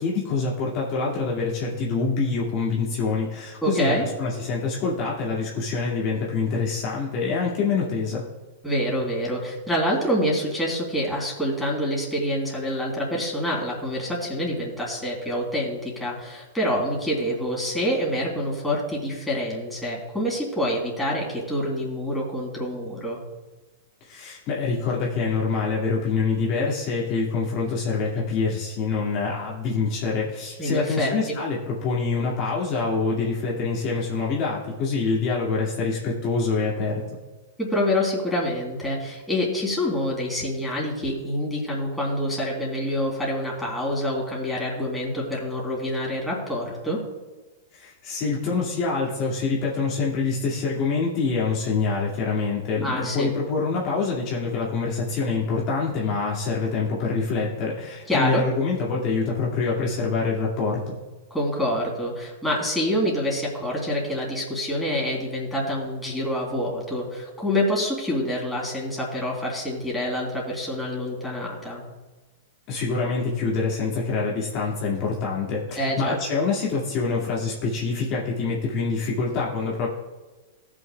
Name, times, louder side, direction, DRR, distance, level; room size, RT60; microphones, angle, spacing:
voice 1, 0.0-3.9 4.2-8.2 24.0-37.0 47.7-61.0 72.7-79.9, left 4 dB, 45° left, -4 dB, 2.1 m, -25 dB
voice 2, 3.6-4.1 8.6-23.2 30.6-31.1 37.6-47.0 52.8-53.3 58.1-58.4 61.3-71.8 75.8-76.2, equal, 5° left, -4 dB, 3.3 m, -26 dB
18.5 x 6.3 x 2.3 m, 1.2 s
hypercardioid pair, 120°, 0 cm